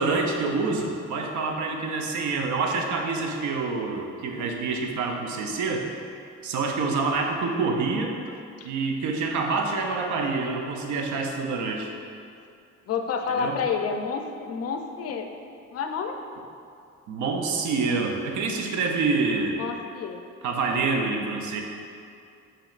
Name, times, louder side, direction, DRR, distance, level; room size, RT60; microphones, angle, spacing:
voice 1, 0.0-5.9 6.4-8.2 8.6-11.9 13.3-13.6 17.1-19.6 20.4-21.6, right 4 dB, 75° right, 2 dB, 0.5 m, -27 dB
voice 2, 12.9-15.3 15.7-16.2 19.5-20.2 21.2-21.5, left 6 dB, 55° left, 5 dB, 0.4 m, -29 dB
4.9 x 3.0 x 2.4 m, 2.4 s
cardioid pair, 90°, 30 cm